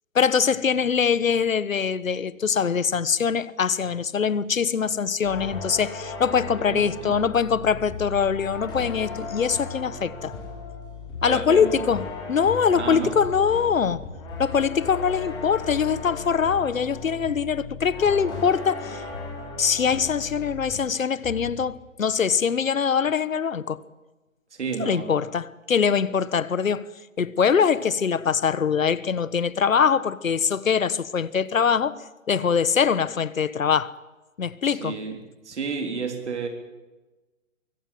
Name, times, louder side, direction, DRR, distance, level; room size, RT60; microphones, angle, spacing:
voice 1, 0.1-10.3 11.2-14.1 14.4-19.0 19.6-23.8 24.8-26.9 27.2-32.0 32.3-33.9 34.4-35.0, left 6 dB, 75° left, 1.4 m, -23 dB
sound 1, 5.2-21.0 21.2-21.7, left 4 dB, 10° left, 5.2 m, -36 dB
voice 2, 6.7-7.2 11.2-11.9 12.7-13.1 24.5-25.1 34.7-35.2 35.4-36.5, right 5 dB, 55° right, 3.9 m, -31 dB
23.5 x 16.0 x 9.4 m
hypercardioid pair, 165°, 40 cm